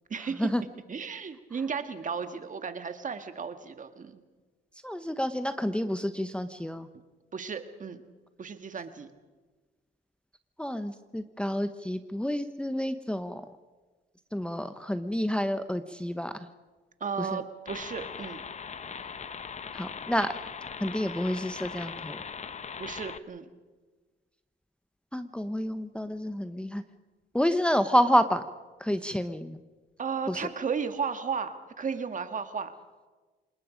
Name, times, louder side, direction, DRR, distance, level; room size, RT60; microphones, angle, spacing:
voice 1, 0.1-0.5 0.9-4.2 7.3-8.0 8.4-9.1 17.0-18.4 22.8-23.5 30.0-32.7, right 6 dB, 40° right, 8 dB, 1.8 m, -34 dB
voice 2, 4.8-6.9 10.6-13.4 14.3-16.5 17.2-17.4 19.7-20.3 20.8-22.2 25.1-26.8 27.3-28.4 28.8-29.6 30.3-30.4, equal, 5° left, 9 dB, 0.9 m, -29 dB
sound 1, 17.7-23.2, left 6 dB, 35° left, 0.9 m, -40 dB
28.0 x 19.5 x 5.1 m, 1.3 s
cardioid pair, 90°, 20 cm